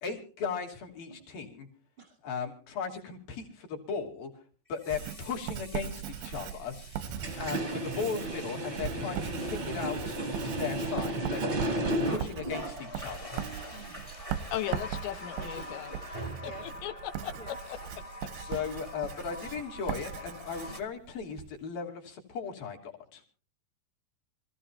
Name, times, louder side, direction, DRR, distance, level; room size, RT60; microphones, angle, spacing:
voice 1, 0.0-1.7 2.2-4.4 4.7-7.0 7.4-11.8 12.0-13.4 18.3-23.2, left 6 dB, 55° left, 2 dB, 4.3 m, -37 dB
Water tap faucet, 1.1-1.2 4.7-11.5 12.0-20.8, equal, 20° left, 0.8 m, -45 dB
Writing, 4.9-21.5, right 10 dB, 80° right, 2.1 m, -40 dB
sound 1, 7.1-12.2, right 1 dB, 45° right, 0.8 m, -33 dB
voice 2, 14.5-15.9 16.4-17.8 18.5-18.7, left 12 dB, 80° left, 10 dB, 3.5 m, -37 dB
voice 3, 15.4-16.6 17.3-17.5, right 2 dB, 25° right, 5 dB, 1.2 m, -49 dB
26.0 x 15.0 x 2.9 m, 0.39 s
omnidirectional pair, 5.1 m